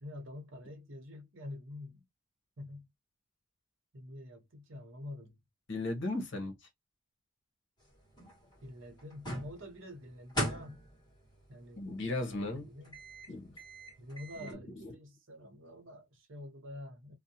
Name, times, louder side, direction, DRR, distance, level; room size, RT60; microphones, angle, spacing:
voice 1, 0.0-2.0 2.6-2.9 3.9-5.4 8.6-10.8 11.5-11.9 12.2-13.0 14.0-17.1, left 1 dB, 65° right, 0.9 m, -47 dB
voice 2, 5.7-6.5 11.8-12.7 13.3-13.6 14.4-14.9, left 2 dB, 55° left, 0.8 m, -36 dB
sound 1, 7.8-14.5, equal, 20° left, 1.2 m, -42 dB
2.6 x 2.1 x 2.7 m
head